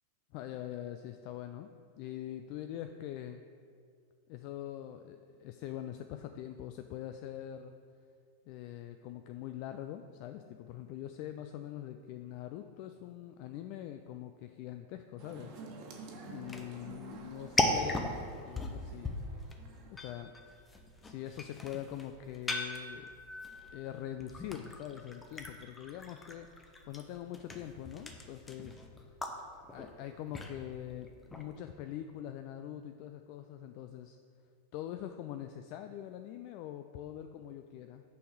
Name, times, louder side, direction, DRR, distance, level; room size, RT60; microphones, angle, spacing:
voice 1, 0.3-1.7 2.0-3.4 4.3-7.7 8.5-15.5 16.2-18.1 18.4-19.5 19.9-20.3 21.0-23.1 23.7-28.8 29.7-34.2 34.7-38.0, left 11 dB, 45° left, 7 dB, 0.3 m, -43 dB
sound 1, 15.2-20.2, right 3 dB, 40° right, 1.3 m, -50 dB
sound 2, 16.4-31.6, left 2 dB, 15° left, 0.8 m, -39 dB
6.7 x 5.3 x 6.2 m, 2.2 s
figure-of-eight pair, 90°, 0 cm